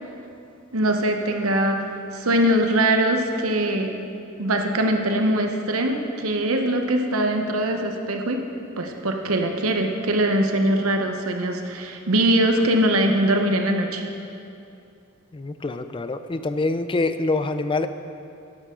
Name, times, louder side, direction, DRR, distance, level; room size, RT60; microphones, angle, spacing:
voice 1, 0.7-1.9 2.1-3.9 4.4-8.4 8.8-14.0, right 1 dB, 85° right, 4 dB, 0.9 m, -22 dB
voice 2, 15.3-17.9, left 3 dB, 25° left, 10 dB, 0.4 m, -25 dB
12.0 x 11.0 x 3.8 m, 2.6 s
head